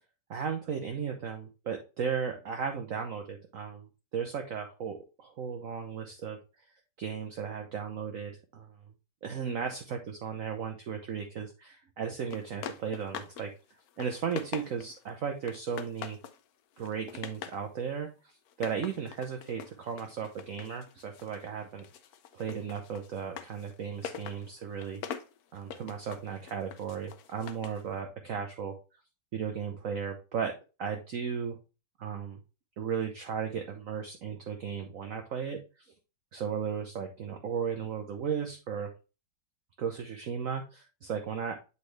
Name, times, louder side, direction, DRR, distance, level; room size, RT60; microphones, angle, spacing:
voice 1, 0.3-3.9 4.1-6.4 7.0-8.7 9.2-13.5 14.0-16.2 16.8-21.9 22.3-25.0 25.5-28.8 29.3-31.6 32.0-32.4 32.8-35.9 36.3-38.9 39.8-41.5, right 7 dB, 60° right, 4 dB, 1.0 m, -35 dB
sound 1, 12.3-13.5 13.8-15.0 15.5-16.4 16.8-17.6 18.5-21.5 21.8-27.8, left 8 dB, 70° left, 1.0 m, -43 dB
8.2 x 4.1 x 3.2 m, 0.31 s
omnidirectional pair, 1.9 m